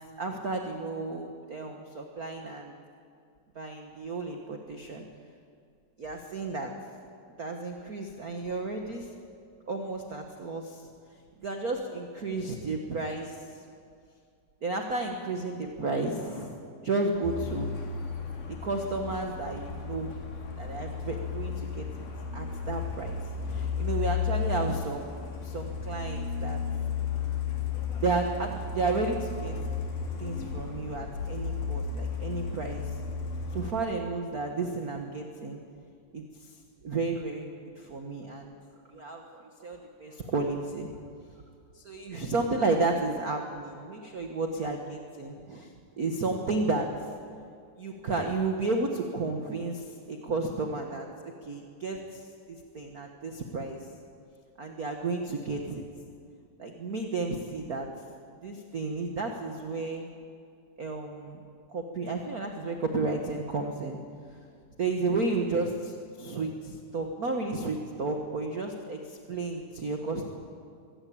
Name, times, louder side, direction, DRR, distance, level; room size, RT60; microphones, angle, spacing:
voice 1, 0.2-2.7 3.5-5.1 6.0-6.7 7.4-9.1 9.7-10.8 11.4-13.4 14.6-17.7 18.5-20.1 20.6-22.1 22.3-23.2 23.5-25.1 25.4-26.6 28.0-29.6 30.2-32.9 33.5-35.6 36.1-36.5 36.8-38.5 38.9-40.9 41.7-46.9 47.8-53.8 54.6-55.8 56.6-57.9 58.4-60.1 60.8-61.4 61.7-64.0 64.8-70.3, right 3 dB, 45° right, 3 dB, 1.3 m, -32 dB
Truck, 17.2-33.7, left 6 dB, 90° left, 4.1 m, -34 dB
23.5 x 17.0 x 8.7 m, 2.3 s
omnidirectional pair, 3.6 m